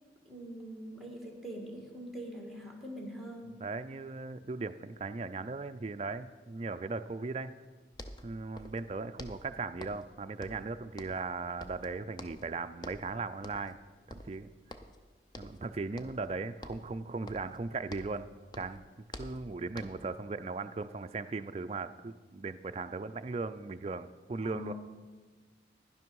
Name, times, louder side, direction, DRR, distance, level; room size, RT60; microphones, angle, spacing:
voice 1, 0.3-3.6 24.4-24.7, equal, ahead, 0 dB, 1.7 m, -43 dB
voice 2, 3.6-7.5 8.2-13.8 14.1-14.5 15.4-18.3 18.6-18.8 19.2-24.7, right 3 dB, 35° right, 10 dB, 0.4 m, -38 dB
sound 1, 7.6-7.7 7.9-8.9 9.2-10.1 10.4-11.3 11.6-12.5 12.8-13.1 13.4-13.8 14.1-15.0 15.3-15.7 16.0-16.3 16.6-18.3 18.5-20.1, left 1 dB, 25° left, 0.5 m, -48 dB
11.0 x 10.5 x 4.7 m, 1.3 s
head